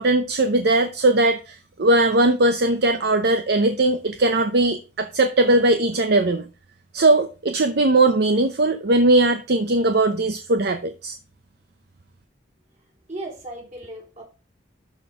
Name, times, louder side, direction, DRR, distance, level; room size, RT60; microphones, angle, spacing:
voice 1, 0.0-6.4 6.9-11.2, right 2 dB, 60° right, 8 dB, 0.7 m, -19 dB
voice 2, 13.1-14.2, right 1 dB, 40° right, -2 dB, 3.7 m, -36 dB
12.5 x 4.4 x 4.9 m, 0.32 s
head